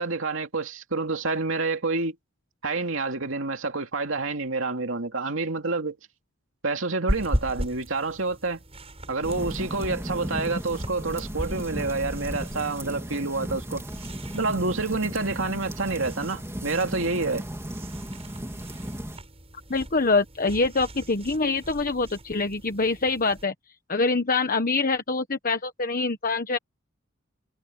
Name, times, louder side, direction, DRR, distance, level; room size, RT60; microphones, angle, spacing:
voice 1, 0.0-2.2 2.6-6.0 6.6-8.6 9.1-13.8 14.3-17.4, right 3 dB, 70° right, 2.7 m, -28 dB
sound 1, 7.1-23.5, equal, 30° right, 7.5 m, -38 dB
sound 2, 9.2-19.2, equal, 15° right, 3.0 m, -35 dB
voice 2, 19.7-23.5 23.9-26.6, left 3 dB, 45° left, 1.3 m, -25 dB
head